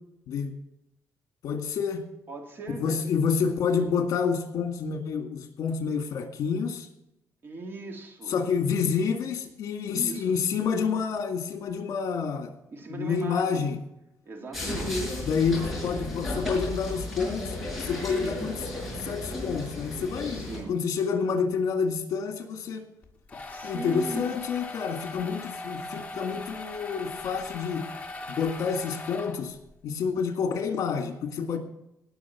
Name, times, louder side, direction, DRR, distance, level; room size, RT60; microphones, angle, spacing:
voice 1, 1.4-2.0 2.8-6.9 8.3-12.5 12.9-13.8 15.2-17.5 17.8-18.6 19.0-22.9 23.6-27.9 28.3-29.6 29.8-31.6, left 6 dB, 65° left, 5 dB, 1.9 m, -28 dB
voice 2, 2.3-3.0 7.4-8.4 9.9-10.3 12.7-13.7 14.3-15.1 15.6-15.7 18.2-18.4 20.3-20.7 23.5-24.3 25.2-25.4, right 3 dB, 40° right, 2 dB, 2.4 m, -39 dB
sound 1, 14.5-20.6, left 1 dB, ahead, 6.0 m, -34 dB
sound 2, 23.0-29.7, left 3 dB, 20° left, 1.5 m, -40 dB
18.0 x 6.6 x 5.8 m, 0.84 s
cardioid pair, 160°, 6 cm